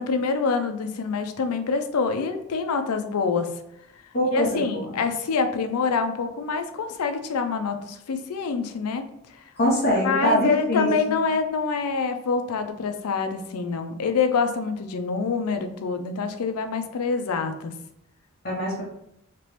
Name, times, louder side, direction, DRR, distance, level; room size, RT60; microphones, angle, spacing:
voice 1, 0.0-3.5 4.3-9.0 9.3-9.5 10.0-17.7, left 4 dB, 90° left, 7 dB, 0.5 m, -26 dB
voice 2, 4.1-4.8 9.6-10.9 18.4-18.8, left 1 dB, 45° left, -5 dB, 0.9 m, -23 dB
2.9 x 2.9 x 3.2 m, 0.80 s
head